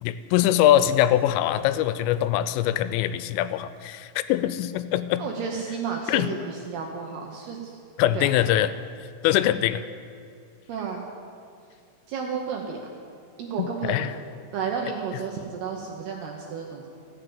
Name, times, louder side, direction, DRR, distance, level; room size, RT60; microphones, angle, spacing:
voice 1, 0.0-5.2 6.1-6.3 8.0-8.7 9.2-9.8 13.6-14.1, left 12 dB, 85° left, 13 dB, 3.1 m, -23 dB
voice 2, 5.2-7.8 8.1-8.3 8.6-8.7 9.4-9.6 10.7-11.1 12.1-12.9 13.4-14.1 14.5-16.9, right 6 dB, 75° right, 1 dB, 2.5 m, -32 dB
14.5 x 7.4 x 8.7 m, 2.3 s
omnidirectional pair, 5.7 m